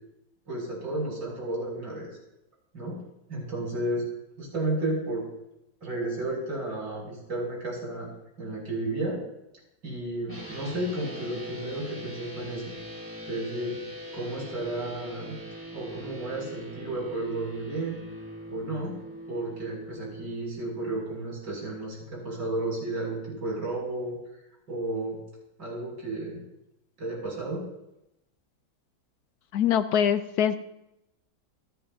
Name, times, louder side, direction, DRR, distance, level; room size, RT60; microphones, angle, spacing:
voice 1, 0.5-2.2 2.7-3.0 3.3-4.1 4.4-5.2 5.8-8.1 8.4-9.2 9.8-12.8 13.3-13.8 14.1-15.4 15.7-18.0 18.5-19.0 19.3-24.2 24.7-25.2 25.6-26.4 27.0-27.7, right 2 dB, 65° right, -3 dB, 7.4 m, -32 dB
sound 1, 10.3-20.2, equal, 5° right, 3.2 m, -41 dB
voice 2, 29.5-30.6, left 9 dB, 70° left, 10 dB, 1.0 m, -23 dB
28.0 x 10.5 x 2.8 m, 0.87 s
omnidirectional pair, 2.1 m